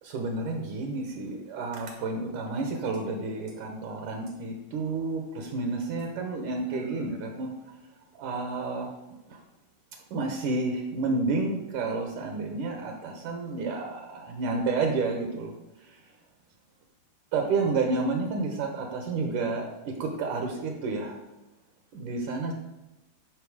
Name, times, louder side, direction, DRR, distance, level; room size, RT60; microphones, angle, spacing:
voice 1, 0.0-7.5 8.2-8.9 9.3-9.4 10.1-15.5 17.3-21.2 21.9-22.5, right 3 dB, 70° right, 3 dB, 2.3 m, -30 dB
13.0 x 5.6 x 4.9 m, 1.0 s
omnidirectional pair, 4.3 m